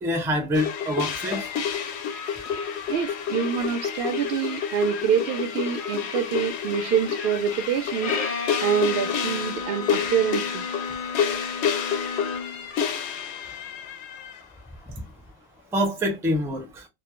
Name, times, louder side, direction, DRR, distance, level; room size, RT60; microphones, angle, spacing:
voice 1, 0.0-1.5 14.9-15.0 15.7-16.9, equal, 5° right, 0.4 m, -26 dB
sound 1, 0.5-14.4, left 7 dB, 80° left, 0.8 m, -29 dB
voice 2, 2.9-8.2 8.6-10.6, right 8 dB, 70° right, 0.8 m, -26 dB
Bowed string instrument, 8.0-12.7, left 5 dB, 55° left, 0.5 m, -32 dB
2.3 x 2.0 x 2.9 m
omnidirectional pair, 1.1 m